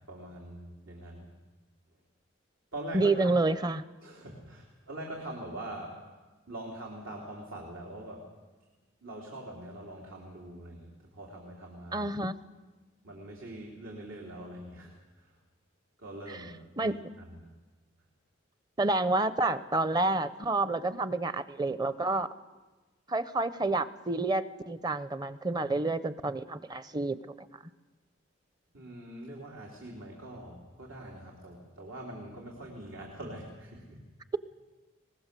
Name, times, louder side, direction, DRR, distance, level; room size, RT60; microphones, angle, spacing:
voice 1, 0.1-1.3 2.7-3.3 4.0-6.0 6.5-8.3 9.0-12.1 13.0-15.3 16.0-17.5 28.7-34.0, right 1 dB, 85° right, -1 dB, 3.4 m, -43 dB
voice 2, 2.9-3.8 11.9-12.4 16.8-17.0 18.8-22.3 23.1-27.5, right 2 dB, 20° right, 13 dB, 0.6 m, -29 dB
23.5 x 20.5 x 6.8 m, 1.3 s
head